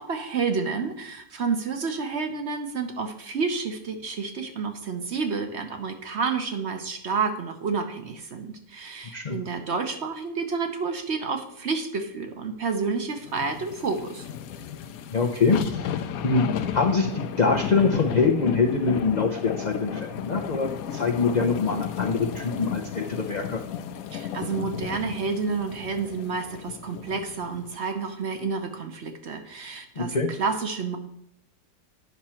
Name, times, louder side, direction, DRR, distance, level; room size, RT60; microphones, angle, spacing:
voice 1, 0.0-14.3 24.1-30.1 30.4-31.0, right 5 dB, 50° right, 6 dB, 0.9 m, -30 dB
sound 1, 13.2-27.7 28.1-28.2, left 9 dB, 70° left, 0.9 m, -33 dB
voice 2, 15.1-15.9 16.2-16.4 16.7-23.6 30.0-30.3, left 4 dB, 90° left, 2 dB, 0.3 m, -24 dB
9.6 x 5.9 x 4.3 m, 0.75 s
omnidirectional pair, 1.8 m